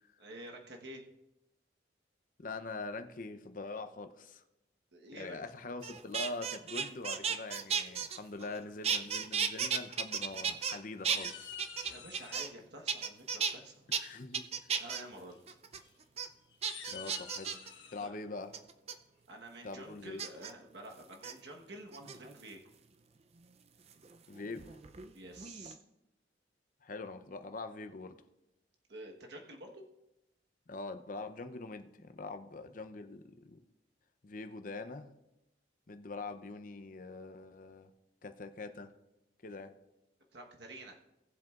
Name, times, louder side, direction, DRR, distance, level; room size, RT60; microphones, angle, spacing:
voice 1, 0.2-1.0 4.9-5.4 8.4-8.5 11.9-13.7 14.1-14.2 14.7-15.4 18.0-18.3 19.3-22.6 25.1-25.8 28.9-29.8 40.3-41.0, right 1 dB, 65° right, 1 dB, 1.2 m, -49 dB
voice 2, 2.4-4.4 5.1-11.5 13.9-14.5 16.9-17.6 17.9-18.5 19.6-20.2 24.3-24.8 26.8-28.1 30.7-33.6 34.2-35.1 35.9-37.9 38.2-38.9 39.4-39.7, left 3 dB, 45° left, 8 dB, 0.7 m, -43 dB
sound 1, 5.8-8.6 8.8-10.8 11.0-12.6 12.9-13.5 13.9-14.0 14.3-15.0 15.5-15.8 16.2-16.3 16.6-17.7 18.5-18.9 20.2-20.5 21.1-21.3 21.9-22.5 23.9-25.1 25.4-25.8, right 7 dB, 35° right, 0.5 m, -35 dB
sound 2, 10.1-10.7 11.1-12.5 13.9-14.3 14.7-15.0 15.2-15.4 15.8-15.9 16.5-18.1, left 8 dB, 85° left, 1.1 m, -50 dB
18.5 x 7.5 x 2.5 m, 0.91 s
head